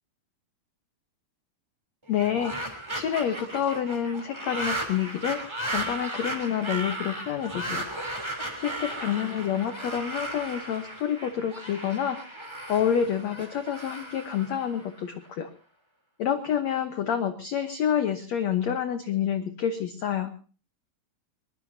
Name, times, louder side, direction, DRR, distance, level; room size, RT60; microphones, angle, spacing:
voice 1, 2.1-5.4 5.7-7.9 8.6-15.5 16.2-20.3, left 9 dB, 90° left, 8 dB, 1.5 m, -28 dB
sound 1, 2.1-15.3, right 1 dB, 5° right, 2.6 m, -36 dB
22.0 x 21.5 x 2.8 m, 0.37 s
omnidirectional pair, 4.8 m